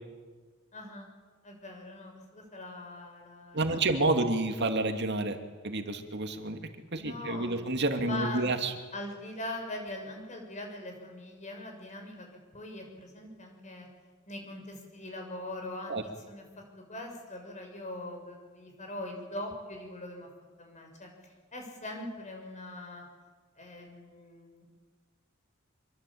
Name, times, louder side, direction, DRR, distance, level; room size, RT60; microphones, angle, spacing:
voice 1, 0.7-1.1 1.4-3.7 7.0-7.7 8.0-8.5 8.9-12.3 12.5-13.9 14.3-20.3 20.6-23.0 23.6-24.8, left 1 dB, 35° left, 2 dB, 6.4 m, -42 dB
voice 2, 3.5-5.4 5.6-6.6 6.9-8.7 15.9-16.0, right 2 dB, 55° right, 6 dB, 2.5 m, -29 dB
26.0 x 22.5 x 8.7 m, 1.4 s
head